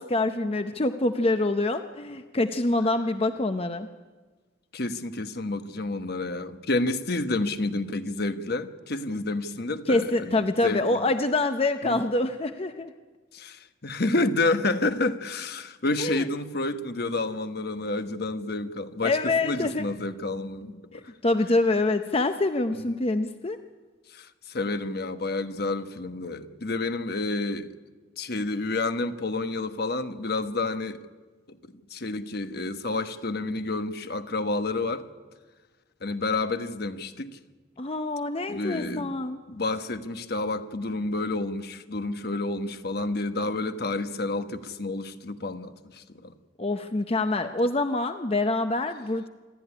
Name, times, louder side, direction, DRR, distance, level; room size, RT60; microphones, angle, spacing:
voice 1, 0.0-3.9 9.9-12.9 16.0-16.3 19.0-19.9 21.2-23.6 37.8-39.4 46.6-49.3, left 2 dB, 30° left, 8 dB, 0.7 m, -26 dB
voice 2, 4.7-11.1 11.8-12.0 13.3-21.0 22.7-22.9 24.1-27.7 28.2-31.0 31.5-31.6 31.9-35.0 36.0-37.4 38.5-39.1 39.5-46.3, left 2 dB, 55° left, 9 dB, 1.2 m, -29 dB
26.5 x 13.0 x 9.8 m, 1.4 s
head